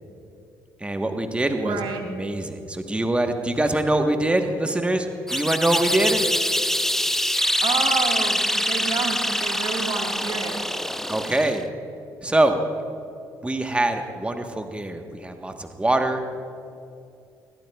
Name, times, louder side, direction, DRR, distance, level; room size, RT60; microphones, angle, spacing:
voice 1, 0.8-6.3 11.1-11.6 12.2-12.6 13.4-16.2, right 1 dB, 15° right, 5 dB, 1.2 m, -24 dB
voice 2, 1.6-2.0 7.6-10.6, right 5 dB, 65° right, 2 dB, 1.7 m, -29 dB
sound 1, 5.3-11.6, left 1 dB, 5° left, 0.6 m, -24 dB
21.0 x 16.5 x 2.3 m, 2.5 s
hypercardioid pair, 55°, 9 cm